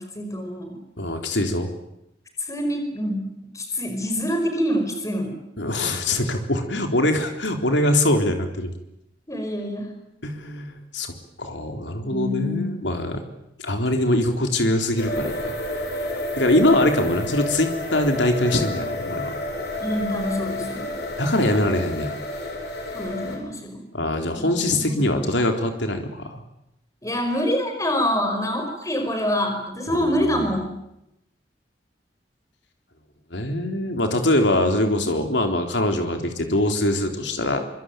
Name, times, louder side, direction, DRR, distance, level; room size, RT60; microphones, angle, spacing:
voice 1, 0.0-0.8 2.4-5.4 9.3-9.9 12.0-12.7 19.8-20.9 22.9-23.8 24.3-25.2 27.0-30.7, equal, 20° left, 5 dB, 5.3 m, -26 dB
voice 2, 1.0-1.7 5.6-8.7 10.2-11.1 11.4-13.2 13.6-15.5 16.4-19.3 21.2-22.1 23.9-26.4 29.9-30.5 33.3-37.6, left 1 dB, 90° left, 5 dB, 3.8 m, -23 dB
sound 1, 15.0-23.4, left 1 dB, 65° left, 6.8 m, -30 dB
25.5 x 24.5 x 9.2 m, 0.84 s
head